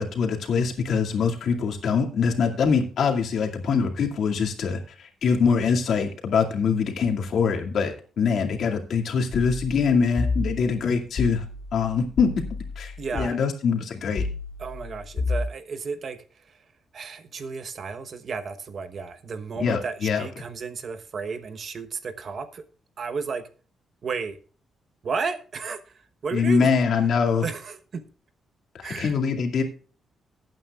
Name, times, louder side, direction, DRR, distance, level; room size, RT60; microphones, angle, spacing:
voice 1, 0.0-11.4 11.7-12.3 12.8-14.3 19.6-20.3 26.3-27.4 28.7-29.6, left 5 dB, 60° left, 2.2 m, -24 dB
sound 1, 10.1-13.2 14.2-15.5, left 3 dB, 40° left, 3.5 m, -31 dB
voice 2, 13.0-13.4 14.6-16.6 16.9-22.6 23.0-23.5 24.0-24.4 25.0-26.8 27.4-28.0 28.8-29.1, right 5 dB, 45° right, 1.0 m, -33 dB
18.5 x 9.1 x 2.4 m
cardioid pair, 150°, 0 cm